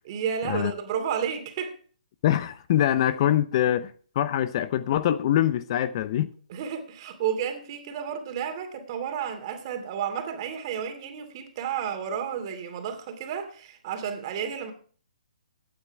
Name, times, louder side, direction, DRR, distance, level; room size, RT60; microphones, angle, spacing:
voice 1, 0.1-1.7 6.5-14.7, right 8 dB, 35° right, 2.6 m, -31 dB
voice 2, 2.2-6.3, left 11 dB, 40° left, 0.6 m, -24 dB
16.5 x 8.8 x 3.5 m
hypercardioid pair, 155°, 4 cm